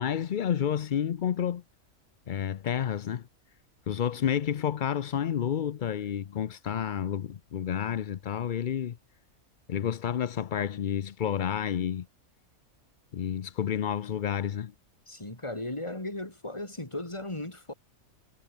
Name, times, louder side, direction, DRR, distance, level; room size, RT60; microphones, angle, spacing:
voice 1, 0.0-1.6 2.3-3.2 3.9-9.0 9.7-12.1 13.1-14.7, left 9 dB, 55° left, 0.6 m, -30 dB
voice 2, 15.1-17.7, left 1 dB, 20° left, 3.0 m, -36 dB
omnidirectional pair, 1.4 m